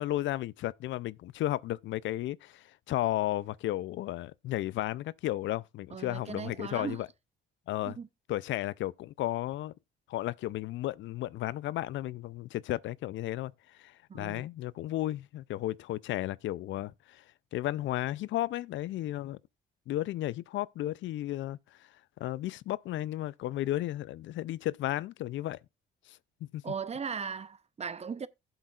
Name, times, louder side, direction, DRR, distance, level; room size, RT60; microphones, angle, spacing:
voice 1, 0.0-7.1 7.7-8.0 8.3-9.7 10.1-13.5 13.8-17.2 17.5-19.4 19.9-21.6 22.2-25.6 26.1-26.2 26.5-26.6, left 14 dB, 75° left, 0.4 m, -33 dB
voice 2, 5.9-7.0 7.9-8.1 14.1-14.4 26.6-28.3, right 6 dB, 30° right, 0.7 m, -38 dB
15.0 x 7.9 x 2.4 m
cardioid pair, 90°, 20 cm